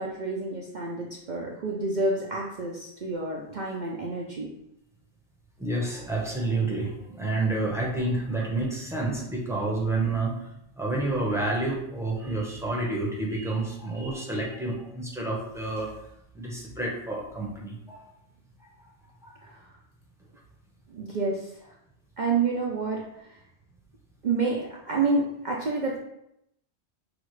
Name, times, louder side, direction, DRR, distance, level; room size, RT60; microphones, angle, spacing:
voice 1, 0.0-4.5 19.4-19.7 20.9-21.7 22.2-23.4 24.2-26.0, right 3 dB, 50° right, -3 dB, 0.6 m, -29 dB
voice 2, 5.6-10.4 10.8-15.9 16.3-18.0 18.6-18.7 19.2-19.3, right 2 dB, 5° right, -3 dB, 0.8 m, -29 dB
6.1 x 2.4 x 3.1 m, 0.78 s
omnidirectional pair, 1.2 m